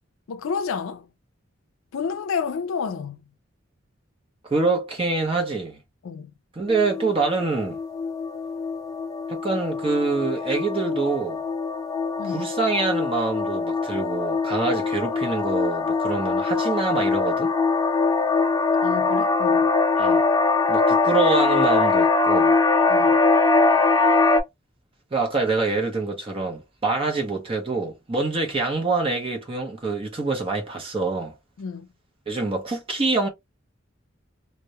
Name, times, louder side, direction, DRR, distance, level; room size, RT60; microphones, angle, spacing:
voice 1, 0.3-1.1 1.9-3.2 6.0-6.3 12.2-12.4 18.8-19.7 22.9-23.2 31.6-31.9, left 6 dB, 80° left, 0.4 m, -30 dB
voice 2, 4.4-5.8 6.5-7.8 9.3-11.4 12.2-17.5 20.0-20.2 20.7-22.5 25.1-31.3 32.3-33.3, right 3 dB, 25° right, 0.7 m, -25 dB
sound 1, 6.7-24.4, left 3 dB, 20° left, 0.4 m, -22 dB
2.2 x 2.1 x 2.7 m
head